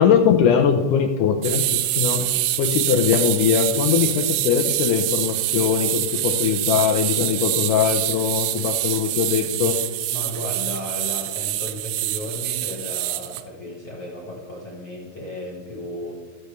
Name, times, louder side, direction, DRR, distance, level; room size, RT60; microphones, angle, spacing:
voice 1, 0.0-2.2 2.6-9.8, left 8 dB, 80° left, 5 dB, 1.9 m, -21 dB
sound 1, 1.4-13.4, right 15 dB, 85° right, 1.8 m, -25 dB
voice 2, 10.1-16.2, left 1 dB, 45° left, -4 dB, 2.4 m, -34 dB
13.5 x 7.9 x 3.3 m, 1.4 s
omnidirectional pair, 4.2 m